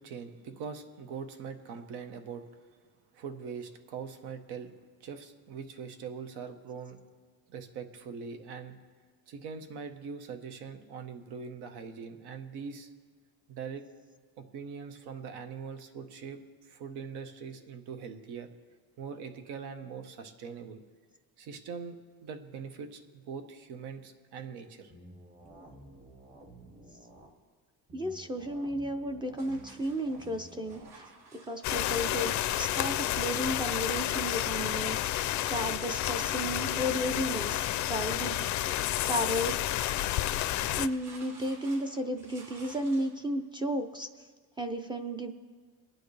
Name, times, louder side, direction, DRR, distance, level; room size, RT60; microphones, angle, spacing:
voice 1, 0.0-2.4 3.1-4.7 5.0-7.1 7.5-8.8 9.3-12.9 13.5-13.8 14.4-18.5 19.0-20.8 21.4-24.9, right 6 dB, 80° right, 7 dB, 1.3 m, -42 dB
sound 1, 24.9-27.3 27.9-30.9, right 1 dB, 35° right, 2.0 m, -52 dB
voice 2, 27.9-31.1 31.3-38.4 39.1-39.6 40.8-44.3 44.6-45.3, equal, 15° right, 4 dB, 0.4 m, -33 dB
sound 2, 29.4-43.3, right 3 dB, 55° right, 4.7 m, -56 dB
sound 3, 31.6-40.9, left 13 dB, 50° left, 0.4 m, -30 dB
23.5 x 9.3 x 3.3 m, 1.5 s
cardioid pair, 165°, 38 cm